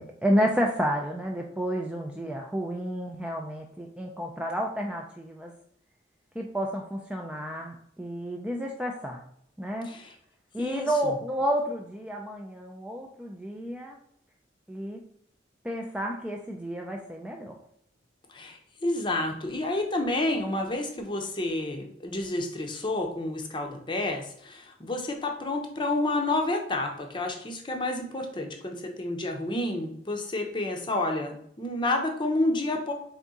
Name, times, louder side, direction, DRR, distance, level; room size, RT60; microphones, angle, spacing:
voice 1, 0.0-5.5 6.4-9.2 9.6-9.9 10.5-14.0 14.7-15.0 15.6-17.5, equal, 5° right, 0 dB, 0.3 m, -30 dB
voice 2, 9.8-10.2 10.6-11.2 18.3-32.9, left 2 dB, 25° left, 3 dB, 0.6 m, -30 dB
4.0 x 3.5 x 3.6 m, 0.70 s
head